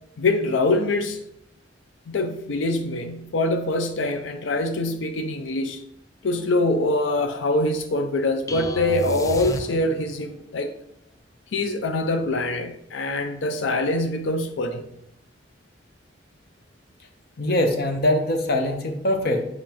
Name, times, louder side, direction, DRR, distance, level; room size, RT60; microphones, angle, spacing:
voice 1, 0.2-1.2 2.1-5.8 6.2-10.7 11.5-14.8, left 2 dB, 90° left, 7 dB, 0.5 m, -24 dB
sound 1, 8.5-10.2, left 1 dB, 20° left, 0.3 m, -31 dB
voice 2, 17.4-19.4, left 1 dB, 55° left, 5 dB, 0.9 m, -22 dB
7.4 x 4.9 x 2.9 m, 0.78 s
head